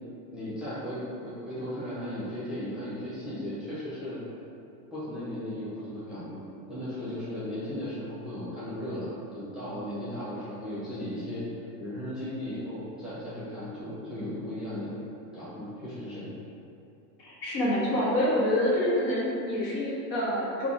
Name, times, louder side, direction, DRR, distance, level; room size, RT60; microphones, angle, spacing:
voice 1, 0.3-4.2 4.9-6.4 6.7-11.4 11.8-15.0 15.3-16.3, left 1 dB, ahead, -12 dB, 0.6 m, -36 dB
voice 2, 17.2-20.7, left 1 dB, 75° left, -6 dB, 1.1 m, -27 dB
3.4 x 2.3 x 2.5 m, 2.7 s
supercardioid pair, 130°, 49 cm